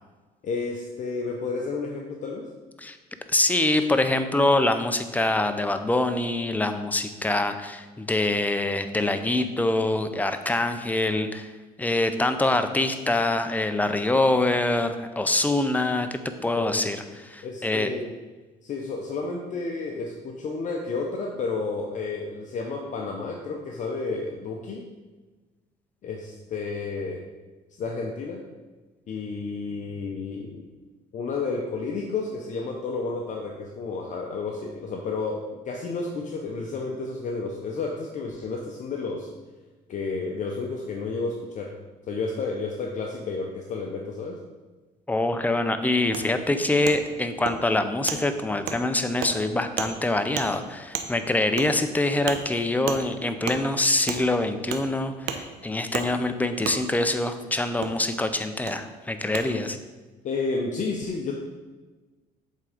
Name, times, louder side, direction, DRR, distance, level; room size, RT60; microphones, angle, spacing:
voice 1, 0.4-2.5 16.6-16.9 17.4-18.2 18.6-24.8 26.0-27.2 27.8-28.4 29.1-30.7 31.1-39.3 39.9-41.7 42.0-44.4 60.2-61.4, left 4 dB, 50° left, 1 dB, 0.7 m, -31 dB
voice 2, 3.3-11.5 11.8-17.9 45.1-59.8, left 2 dB, 10° left, 8 dB, 0.5 m, -25 dB
Wood, 46.1-46.2 46.8-47.0 47.4-47.6 48.1-48.2 48.7-48.8 49.2-49.3 49.8-49.9 50.3-50.5 50.9-51.1 51.6-51.7 52.3-52.4 52.9-53.0 53.4-53.6 54.1-54.2 54.7-54.8 55.3-55.4 55.9-56.1 56.6-56.8 57.8-57.9 58.7-58.8 59.3-59.4, right 8 dB, 85° right, 0.7 m, -30 dB
7.6 x 3.7 x 5.0 m, 1.3 s
cardioid pair, 110°, 17 cm